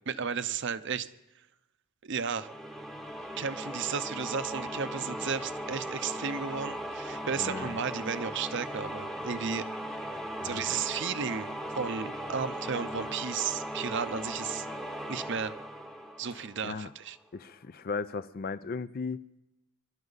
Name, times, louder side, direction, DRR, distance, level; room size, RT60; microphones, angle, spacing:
voice 1, 0.1-1.1 2.0-2.5 3.4-9.7 10.4-14.7 15.1-15.5 16.2-17.2, right 6 dB, 55° right, 12 dB, 0.7 m, -34 dB
sound 1, 2.4-17.0, equal, ahead, 0.9 m, -38 dB
voice 2, 7.4-7.8 10.4-10.7 16.3-16.9 17.3-19.2, left 4 dB, 45° left, 15 dB, 0.4 m, -37 dB
24.0 x 12.5 x 4.0 m, 0.92 s
head